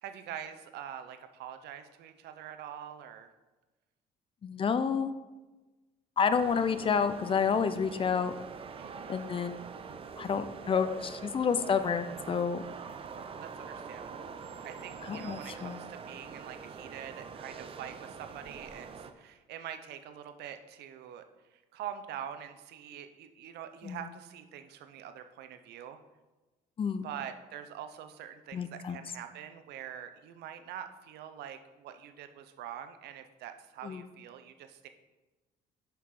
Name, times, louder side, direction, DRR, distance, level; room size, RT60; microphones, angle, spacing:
voice 1, 0.0-3.3 8.8-9.1 13.4-14.3 14.6-21.2 21.5-26.0 27.0-34.9, right 9 dB, 75° right, 9 dB, 0.7 m, -45 dB
voice 2, 4.4-5.1 6.2-8.3 9.1-9.6 10.2-12.6 15.1-15.8 23.8-24.0 26.8-27.1 28.5-29.0 33.8-34.0, left 6 dB, 30° left, 11 dB, 0.5 m, -29 dB
sound 1, 6.3-19.1, right 5 dB, 35° right, 0.5 m, -44 dB
5.8 x 5.7 x 4.8 m, 1.2 s
cardioid pair, 110°, 17 cm